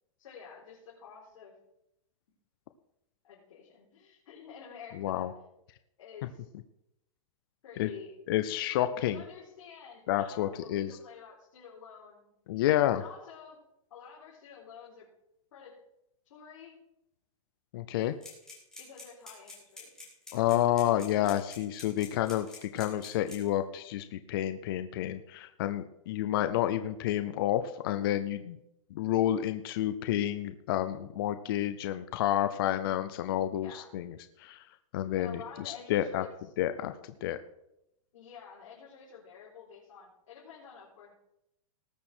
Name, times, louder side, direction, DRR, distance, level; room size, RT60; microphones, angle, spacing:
voice 1, 0.2-1.5 3.2-5.3 6.0-6.5 7.6-8.2 9.0-12.4 12.9-13.6 13.9-15.1 15.5-15.8 16.2-16.8 18.8-19.9 33.6-33.9 35.1-36.3 38.1-41.1, left 7 dB, 65° left, -6 dB, 4.0 m, -49 dB
voice 2, 4.9-5.3 7.8-7.9 8.3-9.2 10.1-11.0 12.5-13.0 17.7-18.2 20.3-28.6 28.9-34.7 34.9-36.3 36.6-37.4, left 12 dB, 40° left, 9 dB, 0.5 m, -30 dB
sound 1, 18.2-23.5, left 4 dB, 5° left, 2.8 m, -47 dB
18.5 x 6.5 x 4.4 m, 0.83 s
supercardioid pair, 170°, 18 cm